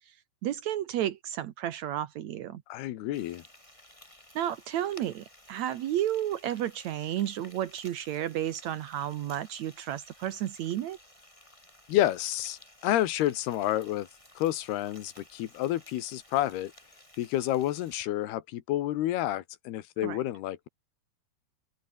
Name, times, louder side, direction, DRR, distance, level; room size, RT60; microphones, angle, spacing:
voice 1, 0.4-2.6 4.4-11.0 20.0-20.2, right 11 dB, 85° right, 1.6 m, -32 dB
voice 2, 2.7-3.4 11.9-14.1 14.4-16.7 17.2-20.7, left 14 dB, 70° left, 3.2 m, -29 dB
Frying (food), 3.1-18.0, left 1 dB, 5° left, 5.8 m, -55 dB
open air
omnidirectional pair, 4.9 m